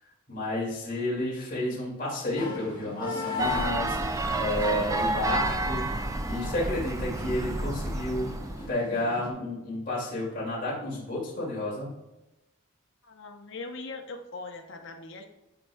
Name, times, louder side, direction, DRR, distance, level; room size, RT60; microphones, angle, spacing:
voice 1, 0.3-8.3 8.7-11.9, left 1 dB, 40° left, -7 dB, 2.5 m, -31 dB
voice 2, 1.0-1.4 13.0-15.3, left 3 dB, 60° left, 4 dB, 0.9 m, -41 dB
sound 1, 2.4-9.3, left 3 dB, 20° left, 1.4 m, -38 dB
sound 2, 3.4-8.7, right 2 dB, 15° right, 0.4 m, -30 dB
12.0 x 4.6 x 2.3 m, 0.97 s
head